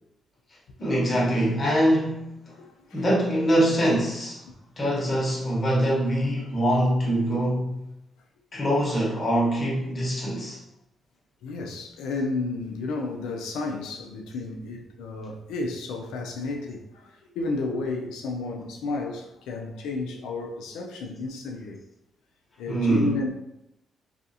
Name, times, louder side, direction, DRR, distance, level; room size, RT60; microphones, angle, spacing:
voice 1, 0.8-2.5 2.9-4.4 4.8-7.8 8.5-10.6 22.7-23.2, right 1 dB, 40° left, 1.0 m, -24 dB
voice 2, 2.6-3.0 6.4-6.5 11.4-21.8 22.6-23.3, left 3 dB, 85° left, 0.4 m, -32 dB
2.4 x 2.3 x 2.6 m
supercardioid pair, 60°, 0 cm